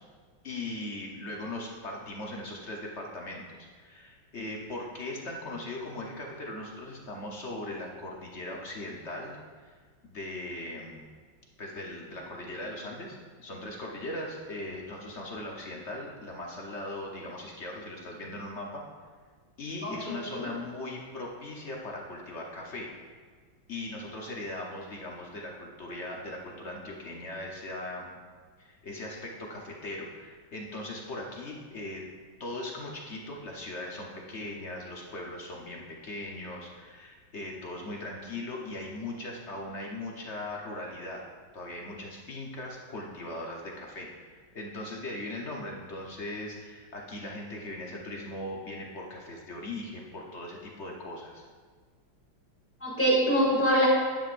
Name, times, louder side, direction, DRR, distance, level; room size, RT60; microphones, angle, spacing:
voice 1, 0.4-3.4 3.7-9.7 10.0-11.1 11.6-18.8 19.6-22.9 23.7-28.1 28.6-32.0 32.4-41.2 41.5-51.4, left 1 dB, 45° left, -1 dB, 1.0 m, -39 dB
voice 2, 19.8-20.5 52.8-53.9, equal, 5° left, -6 dB, 2.2 m, -25 dB
11.0 x 9.2 x 2.6 m, 1.5 s
omnidirectional pair, 2.3 m